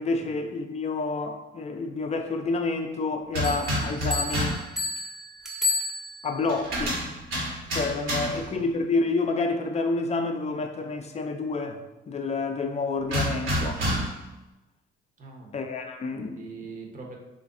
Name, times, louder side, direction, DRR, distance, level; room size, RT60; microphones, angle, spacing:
voice 1, 0.0-4.6 6.2-7.0 7.7-11.8 12.1-13.8 15.5-16.4, left 3 dB, 35° left, 5 dB, 0.4 m, -29 dB
sound 1, 3.3-4.7 6.5-8.5 13.1-14.3, equal, 80° right, 1.2 m, -29 dB
sound 2, 3.4-6.5, left 3 dB, ahead, 0.8 m, -31 dB
voice 2, 8.2-8.6 15.2-15.5 16.4-17.2, right 4 dB, 40° right, 0 dB, 0.8 m, -42 dB
3.1 x 2.5 x 3.6 m, 1.0 s
cardioid pair, 90°, 20 cm